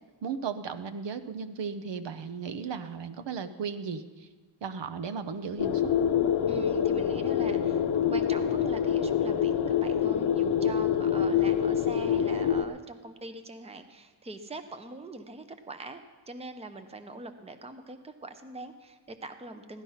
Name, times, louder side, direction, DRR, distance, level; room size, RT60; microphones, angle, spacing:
voice 1, 0.2-4.3 4.6-5.9, right 6 dB, 70° right, 11 dB, 0.9 m, -35 dB
sound 1, 5.6-12.6, left 8 dB, 65° left, 0.7 m, -26 dB
voice 2, 6.5-16.0 16.3-19.8, right 2 dB, 15° right, 9 dB, 0.7 m, -43 dB
16.5 x 12.0 x 5.7 m, 1.4 s
wide cardioid pair, 165°, 45 cm